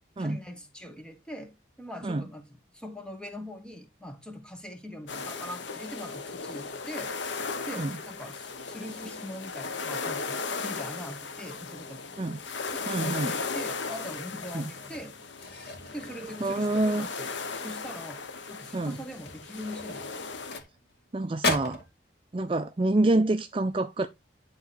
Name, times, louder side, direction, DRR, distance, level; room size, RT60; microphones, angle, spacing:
voice 1, 0.2-2.4 2.7-7.1 7.7-12.3 12.7-15.2 15.9-18.2 18.5-20.2, equal, 5° left, 1.5 m, -42 dB
sound 1, 5.1-20.6, left 4 dB, 75° left, 1.1 m, -37 dB
voice 2, 12.9-13.3 14.5-14.6 16.4-17.1 18.7-19.0 21.1-21.8 22.3-24.1, right 2 dB, 30° right, 0.4 m, -27 dB
sound 2, 14.7-17.4 17.7-18.0 18.4-18.5 19.1-21.1 21.4-21.9, left 2 dB, 60° left, 2.5 m, -36 dB
10.5 x 3.9 x 4.3 m
head